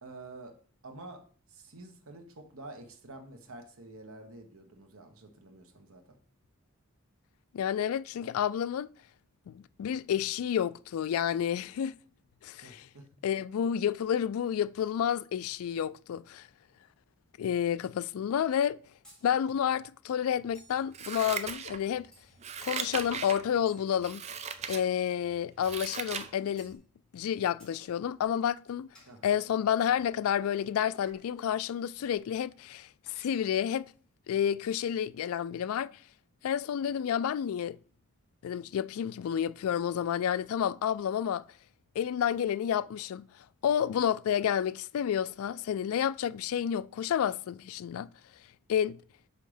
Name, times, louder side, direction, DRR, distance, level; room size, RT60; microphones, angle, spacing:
voice 1, 0.0-0.6 0.8-1.2 1.5-6.2 12.6-13.1 29.1-29.4, right 2 dB, 75° right, 1.3 m, -48 dB
voice 2, 7.5-8.9 9.5-11.9 12.4-12.9 13.2-16.5 17.4-18.8 19.2-22.1 22.6-24.2 24.7-26.8 27.1-28.9 29.2-33.8 34.3-35.9 36.4-37.8 38.4-41.4 42.0-43.2 43.6-48.1 48.7-49.0, left 9 dB, 80° left, 0.3 m, -30 dB
sound 1, 19.0-19.3 20.5-20.9 22.1-22.6 23.7-24.6 25.6-25.9 26.6-26.8 27.6-27.8 28.9-29.2 30.0-30.2 31.1-31.4 32.0-32.3 33.1-33.7, equal, 5° left, 2.8 m, -60 dB
Scissors, 20.9-22.0 22.4-23.4 24.0-24.8 25.3-26.3 26.7-26.8, right 6 dB, 30° right, 0.4 m, -38 dB
5.6 x 5.2 x 5.0 m
head